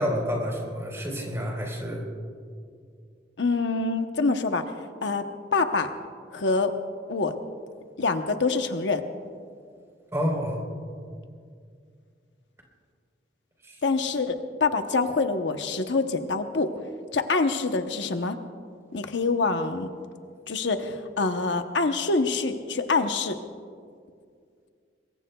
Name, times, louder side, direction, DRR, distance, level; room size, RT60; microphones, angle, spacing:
voice 1, 0.0-2.0 10.1-10.6 13.7-13.8, equal, 15° right, 0 dB, 4.0 m, -29 dB
voice 2, 3.4-4.6 5.0-5.2 5.5-5.9 6.3-6.7 7.1-7.3 8.0-9.0 13.8-16.7 17.1-18.4 18.9-19.9 20.5-23.4, left 3 dB, 80° left, 6 dB, 0.9 m, -25 dB
26.5 x 22.0 x 2.3 m, 2.2 s
head